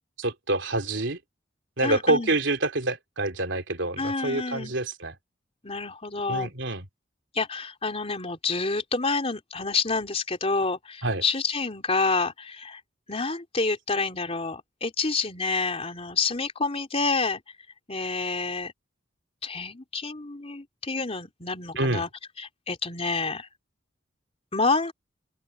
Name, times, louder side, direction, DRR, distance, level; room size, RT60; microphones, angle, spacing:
voice 1, 0.2-1.2 1.8-5.1 6.3-6.9 11.0-11.2 21.8-22.0, right 2 dB, 75° right, 3.4 m, -27 dB
voice 2, 1.8-2.4 4.0-4.7 5.6-6.5 7.3-12.8 13.1-17.4 17.9-18.7 19.4-22.1 22.4-23.5 24.5-24.9, left 4 dB, 35° left, 3.4 m, -28 dB
open air
head